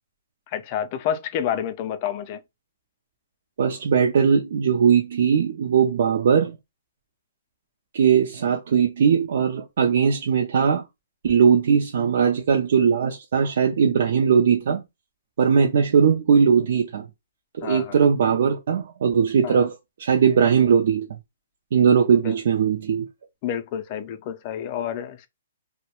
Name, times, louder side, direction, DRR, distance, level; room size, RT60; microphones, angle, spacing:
voice 1, 0.5-2.4 17.6-18.0 19.4-19.6 22.2-22.4 23.4-25.3, left 9 dB, 35° left, 0.4 m, -29 dB
voice 2, 3.6-6.6 7.9-10.9 11.2-14.8 15.4-17.1 17.6-19.7 20.0-21.2 21.7-23.1, right 7 dB, 60° right, 0.4 m, -19 dB
2.2 x 2.1 x 2.9 m
hypercardioid pair, 155°, 0 cm